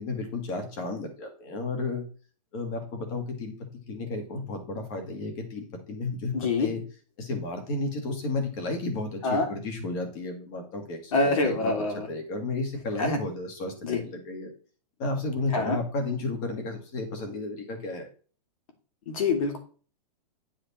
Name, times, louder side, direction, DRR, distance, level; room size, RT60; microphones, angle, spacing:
voice 1, 0.0-2.0 2.5-3.5 3.9-6.8 7.2-11.7 12.1-14.5 15.0-18.1, left 3 dB, 30° left, 5 dB, 2.1 m, -33 dB
voice 2, 6.3-6.7 9.2-9.5 11.1-12.1 13.0-13.2 13.8-14.0 15.5-15.8 19.1-19.6, left 3 dB, 55° left, 4 dB, 2.8 m, -25 dB
10.5 x 4.9 x 4.3 m, 0.39 s
hypercardioid pair, 170°, 21 cm